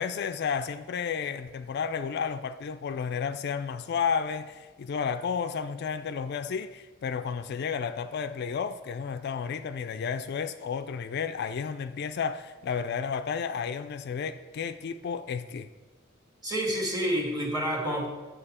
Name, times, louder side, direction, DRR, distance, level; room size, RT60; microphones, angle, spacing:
voice 1, 0.0-15.7, left 6 dB, 55° left, 0.3 m, -32 dB
voice 2, 16.4-18.1, equal, 20° right, 1.8 m, -28 dB
8.9 x 7.0 x 4.2 m
head